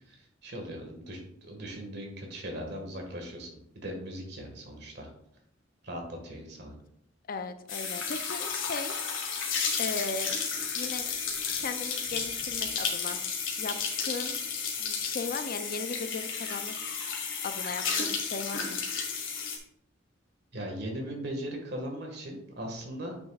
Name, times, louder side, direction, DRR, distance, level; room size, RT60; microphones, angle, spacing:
voice 1, 0.1-3.5 3.8-5.1 5.8-6.7 20.5-23.2, equal, 55° right, 2 dB, 1.8 m, -39 dB
voice 2, 7.3-8.9 9.4-9.5 9.8-10.3 10.7-11.1 11.6-13.2 13.6-14.4 14.8-17.0 17.4-18.8, left 4 dB, 45° left, 9 dB, 0.5 m, -37 dB
sound 1, 7.7-19.6, left 6 dB, 85° left, 1.7 m, -32 dB
9.0 x 6.1 x 2.4 m, 0.75 s
head